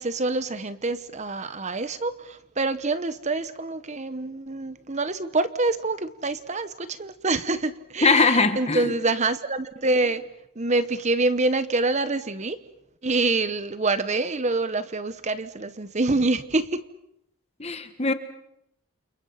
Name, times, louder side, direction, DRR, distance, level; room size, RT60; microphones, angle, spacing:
voice 1, 0.0-10.3 10.6-12.6 13.0-16.8, right 3 dB, 30° right, 12 dB, 1.0 m, -26 dB
voice 2, 8.0-8.9 17.6-18.1, left 4 dB, 30° left, 9 dB, 1.6 m, -21 dB
29.0 x 29.0 x 5.8 m, 0.78 s
head